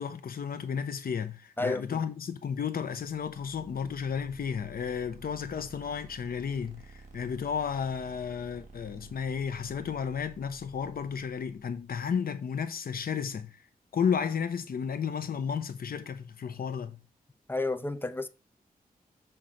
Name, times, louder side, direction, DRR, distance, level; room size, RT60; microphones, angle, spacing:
voice 1, 0.0-13.6 13.9-17.0, left 7 dB, 70° left, 0.9 m, -33 dB
voice 2, 1.6-2.0 17.5-18.3, left 2 dB, 15° left, 0.6 m, -31 dB
sound 1, 3.0-11.8, right 4 dB, 50° right, 2.0 m, -52 dB
6.6 x 3.6 x 5.8 m
wide cardioid pair, 115°, 16 cm